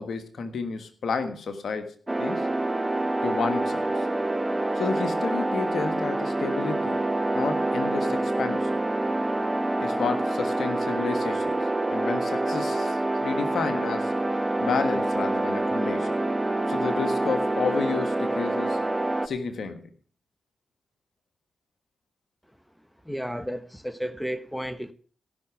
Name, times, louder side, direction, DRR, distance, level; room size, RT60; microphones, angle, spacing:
voice 1, 0.0-2.5 3.2-4.0 4.7-7.0 7.3-8.7 9.8-11.6 11.9-14.1 14.6-16.2 16.7-18.8 19.2-19.9, left 5 dB, 70° left, 8 dB, 1.5 m, -31 dB
sound 1, 2.1-19.3, right 2 dB, 20° right, 1.2 m, -26 dB
voice 2, 23.0-24.9, equal, 5° left, 12 dB, 1.3 m, -32 dB
16.5 x 6.1 x 6.0 m, 0.43 s
supercardioid pair, 40°, 0 cm